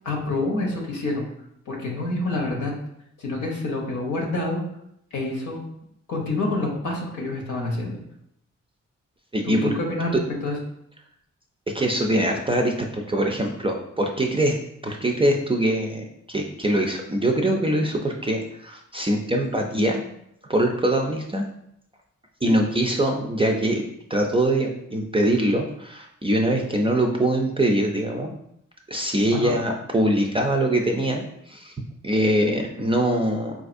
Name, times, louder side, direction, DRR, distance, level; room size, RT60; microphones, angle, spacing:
voice 1, 0.0-1.3 1.7-2.7 3.2-4.6 5.1-5.6 6.1-8.0 9.4-10.1 10.4-10.6 22.4-22.6 29.3-29.5, left 2 dB, 85° left, 0 dB, 0.8 m, -27 dB
voice 2, 9.3-9.7 11.7-14.5 14.8-20.0 20.4-21.5 22.4-23.8 24.1-28.3 28.9-31.7 32.0-33.5, right 1 dB, 20° right, 1 dB, 0.4 m, -23 dB
4.0 x 2.5 x 2.5 m, 0.76 s
cardioid pair, 65°, 30 cm